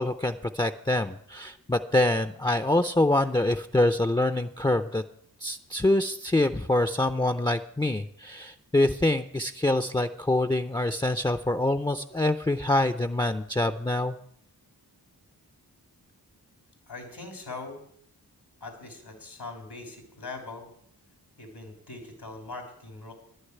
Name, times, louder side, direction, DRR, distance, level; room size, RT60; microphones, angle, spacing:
voice 1, 0.0-5.0 5.4-14.1, left 1 dB, 10° left, 8 dB, 0.5 m, -25 dB
voice 2, 16.9-17.8 18.6-20.7 21.4-23.1, left 3 dB, 85° left, 3 dB, 3.1 m, -41 dB
11.0 x 6.6 x 9.4 m, 0.66 s
wide cardioid pair, 50°, 39 cm